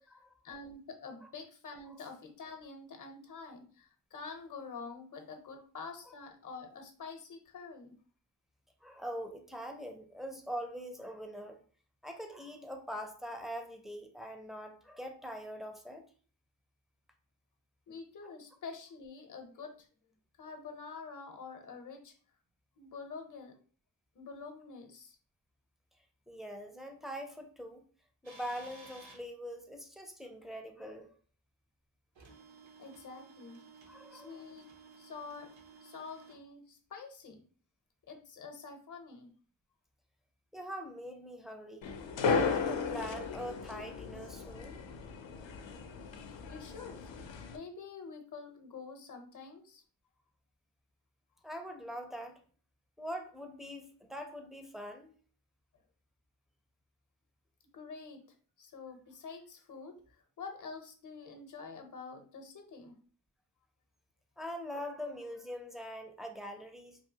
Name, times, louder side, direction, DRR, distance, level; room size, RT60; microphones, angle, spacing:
voice 1, 0.4-8.0 17.9-19.9 20.4-22.1 22.8-23.6 24.1-25.2 32.8-34.7 35.0-35.6 35.8-37.5 38.1-39.4 46.5-47.1 47.5-49.8 57.7-58.3 58.6-63.0, left 4 dB, 45° left, 6 dB, 0.7 m, -47 dB
voice 2, 8.8-11.6 12.0-16.0 26.3-27.8 28.2-31.1 33.9-34.4 40.5-41.8 42.3-44.8 51.4-52.4 53.0-55.1 64.4-67.0, equal, ahead, 3 dB, 0.4 m, -43 dB
sound 1, 28.2-29.2 32.1-36.4, right 4 dB, 85° right, 0.8 m, -55 dB
sound 2, 41.8-47.6, left 5 dB, 80° left, 0.5 m, -35 dB
2.7 x 2.7 x 2.7 m, 0.43 s
wide cardioid pair, 70°, 44 cm